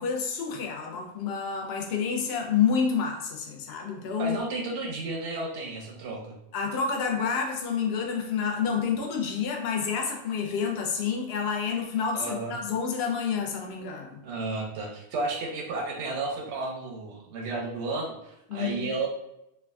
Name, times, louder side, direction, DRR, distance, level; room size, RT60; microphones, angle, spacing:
voice 1, 0.0-4.4 6.5-14.2 18.5-18.9, left 6 dB, 70° left, 1 dB, 0.8 m, -29 dB
voice 2, 4.2-6.3 12.1-12.6 14.2-19.1, right 3 dB, 85° right, 0 dB, 0.9 m, -32 dB
3.2 x 2.2 x 2.3 m, 0.85 s
omnidirectional pair, 1.2 m